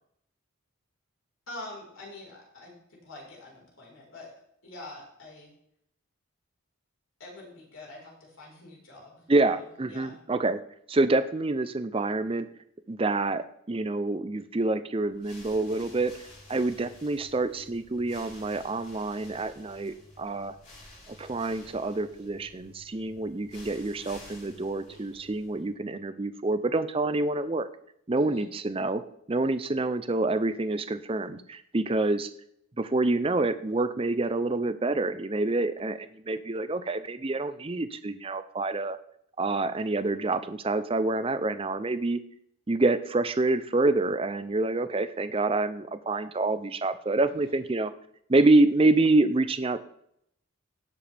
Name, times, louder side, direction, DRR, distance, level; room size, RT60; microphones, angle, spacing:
voice 1, 1.5-4.3 4.6-5.5 7.2-10.2 28.2-28.5 47.3-47.6, left 2 dB, 75° left, -3 dB, 4.7 m, -46 dB
voice 2, 9.3-10.6 10.9-12.5 12.9-16.1 16.5-20.5 21.1-27.7 28.1-29.0 29.3-32.3 32.8-39.0 39.4-42.2 42.7-47.9 48.3-49.8, right 2 dB, 25° right, 12 dB, 0.5 m, -27 dB
sound 1, 15.1-25.7, left 1 dB, 35° left, 4.1 m, -52 dB
17.5 x 7.7 x 3.4 m, 0.72 s
head